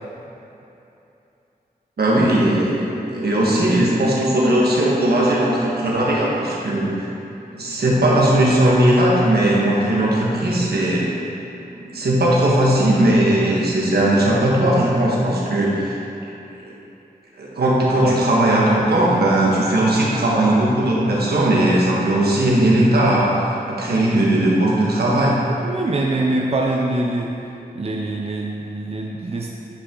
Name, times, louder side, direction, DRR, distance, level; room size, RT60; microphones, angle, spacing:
voice 1, 2.0-6.9 7.5-11.1 11.8-15.9 16.5-16.7 17.4-25.3, right 1 dB, 80° right, -5 dB, 1.6 m, -18 dB
voice 2, 25.6-27.3 27.7-29.5, right 2 dB, 40° right, -1 dB, 0.6 m, -23 dB
10.0 x 5.7 x 3.9 m, 2.9 s
wide cardioid pair, 100°, 16 cm